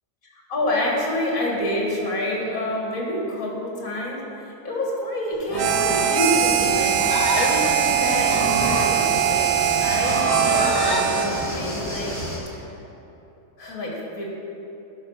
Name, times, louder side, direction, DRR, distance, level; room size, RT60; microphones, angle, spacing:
voice 1, 0.2-9.4 9.8-12.2 12.5-12.7 13.6-14.3, left 1 dB, 65° left, -2 dB, 2.2 m, -27 dB
Livestock farm animals working animals, 5.4-11.1, left 1 dB, 25° left, 0.5 m, -28 dB
Harmonica, 5.6-11.6, right 10 dB, 80° right, 1.1 m, -22 dB
sound 1, 6.2-12.4, equal, 10° left, 1.5 m, -31 dB
12.0 x 5.5 x 5.6 m, 2.9 s
omnidirectional pair, 1.6 m